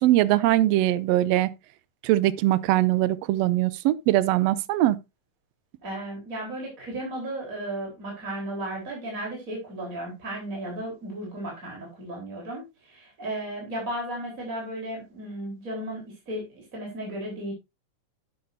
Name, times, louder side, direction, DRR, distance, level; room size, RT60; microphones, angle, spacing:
voice 1, 0.0-1.5 2.0-5.0, right 15 dB, 80° right, 1.5 m, -21 dB
voice 2, 5.8-17.5, right 1 dB, 25° right, 4.0 m, -35 dB
11.0 x 8.8 x 2.6 m
omnidirectional pair, 3.5 m